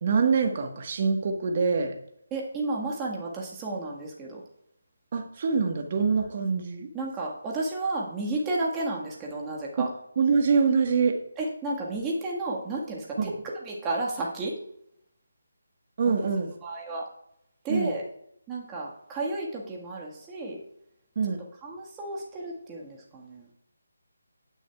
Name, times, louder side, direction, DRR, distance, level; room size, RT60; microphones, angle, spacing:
voice 1, 0.0-1.9 5.1-6.9 9.8-9.9 10.2-11.2 13.2-13.3 16.0-16.5 17.7-17.9 21.1-21.4, right 5 dB, 40° right, 4 dB, 1.3 m, -24 dB
voice 2, 2.3-4.4 6.9-9.9 11.4-13.3 13.6-14.6 16.6-17.0 17.6-18.0 18.5-20.6 21.6-23.5, right 2 dB, 15° right, -3 dB, 1.6 m, -32 dB
17.5 x 6.3 x 2.4 m, 0.75 s
figure-of-eight pair, 155°, 0 cm